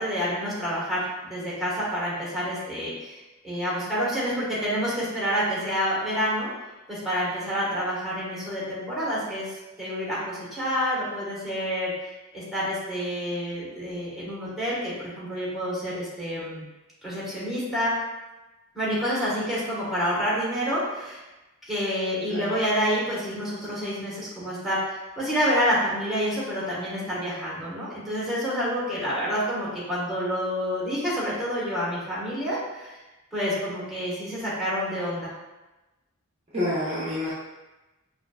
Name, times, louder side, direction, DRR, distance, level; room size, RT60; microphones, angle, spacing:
voice 1, 0.0-3.2 3.4-6.5 6.9-16.6 17.0-17.9 18.7-21.2 21.7-33.0 33.3-35.3, equal, ahead, -8 dB, 1.4 m, -28 dB
voice 2, 36.5-37.3, left 1 dB, 30° right, -9 dB, 0.8 m, -28 dB
5.7 x 2.5 x 2.3 m, 1.1 s
head